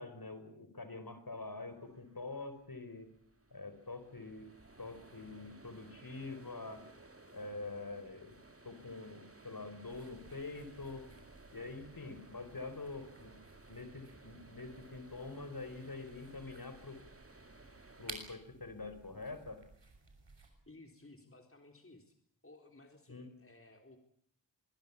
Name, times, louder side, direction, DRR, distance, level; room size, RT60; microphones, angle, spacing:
voice 1, 0.0-3.1 3.5-4.5 4.8-6.8 7.3-8.4 8.6-11.0 11.5-13.4 13.7-17.0 18.0-19.6 23.1-23.3, left 3 dB, 50° left, 10 dB, 4.8 m, -45 dB
sound 1, 1.5-18.1, right 2 dB, 30° right, 2.8 m, -59 dB
sound 2, 9.9-20.5, right 3 dB, 75° right, 6.3 m, -56 dB
voice 2, 20.7-22.2 22.4-24.0, left 2 dB, 30° left, 4 dB, 3.9 m, -57 dB
26.0 x 21.5 x 7.2 m, 0.67 s
wide cardioid pair, 60°, 44 cm